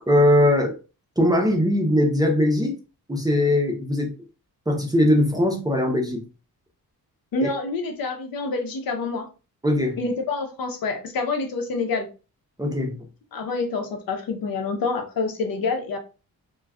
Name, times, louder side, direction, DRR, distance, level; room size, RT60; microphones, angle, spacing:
voice 1, 0.1-0.8 1.2-2.8 3.1-4.2 4.7-6.2 7.4-7.5 9.6-10.0 12.6-13.1, left 1 dB, 10° right, 1 dB, 0.5 m, -20 dB
voice 2, 7.3-9.3 10.0-12.1 13.3-16.0, left 3 dB, 65° left, 4 dB, 0.8 m, -27 dB
2.3 x 2.2 x 3.4 m, 0.32 s
cardioid pair, 115°, 37 cm